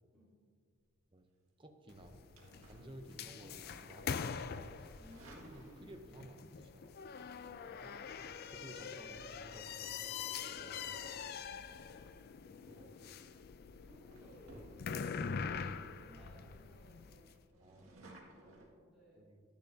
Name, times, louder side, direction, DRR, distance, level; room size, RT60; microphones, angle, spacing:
voice 1, 1.6-2.3 2.7-4.4 4.7-5.0 5.3-7.3 7.6-7.7 8.2-11.1 12.5-12.9 17.6-17.9 19.1-19.4, right 1 dB, 25° right, 5 dB, 0.7 m, -55 dB
sound 1, 1.9-17.3, left 6 dB, 50° left, 0.4 m, -44 dB
sound 2, 1.9-3.5 3.9-4.2 4.8-6.2 7.5-7.7 12.8-13.0 13.5-13.7 14.1-15.2 15.7-15.8 16.0-16.1 16.5-16.6 16.9-18.7, right 1 dB, 90° right, 1.9 m, -59 dB
voice 2, 5.0-6.2 7.5-8.0 8.9-9.3 11.0-11.9 12.6-13.0 13.9-14.6 15.9-19.3, right 1 dB, ahead, -12 dB, 2.7 m, -61 dB
12.0 x 10.5 x 2.7 m, 2.1 s
head